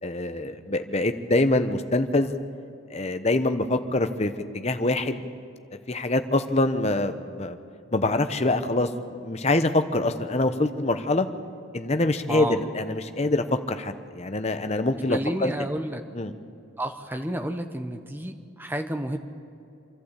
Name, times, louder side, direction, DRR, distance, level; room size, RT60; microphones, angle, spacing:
voice 1, 0.0-2.3 2.9-5.2 5.9-7.6 7.9-8.9 9.2-11.3 11.7-15.5 16.1-16.3, left 2 dB, 30° left, 9 dB, 0.9 m, -25 dB
voice 2, 12.3-12.6 15.1-16.0 16.8-19.2, right 1 dB, 10° right, 6 dB, 1.0 m, -30 dB
27.0 x 12.0 x 8.2 m, 2.6 s
head